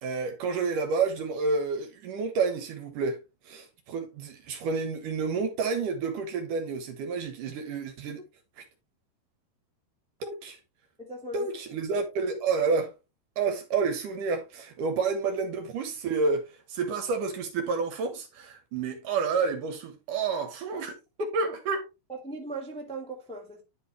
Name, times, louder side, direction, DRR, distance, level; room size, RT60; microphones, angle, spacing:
voice 1, 0.0-3.2 3.5-8.2 10.2-10.6 11.3-12.9 13.4-21.0 21.3-21.8, right 4 dB, 65° right, 2.3 m, -29 dB
voice 2, 11.0-11.5 15.0-15.1 21.2-21.5 22.1-23.6, equal, 5° left, 0.5 m, -37 dB
10.5 x 5.5 x 3.2 m
omnidirectional pair, 4.8 m